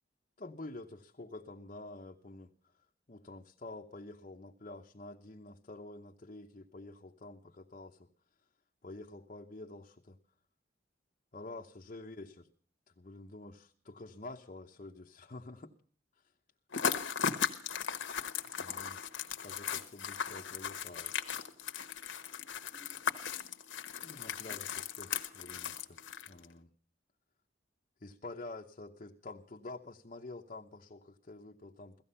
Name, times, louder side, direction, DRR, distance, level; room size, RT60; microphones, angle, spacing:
voice 1, 0.4-2.5 3.1-8.1 8.8-10.2 11.3-12.5 13.0-15.7 18.6-19.1 19.4-21.1 24.0-26.7 28.0-32.0, left 2 dB, 40° left, 0 dB, 0.9 m, -48 dB
sound 1, 16.7-26.5, left 7 dB, 80° left, 1.2 m, -37 dB
17.0 x 14.5 x 5.5 m, 0.44 s
head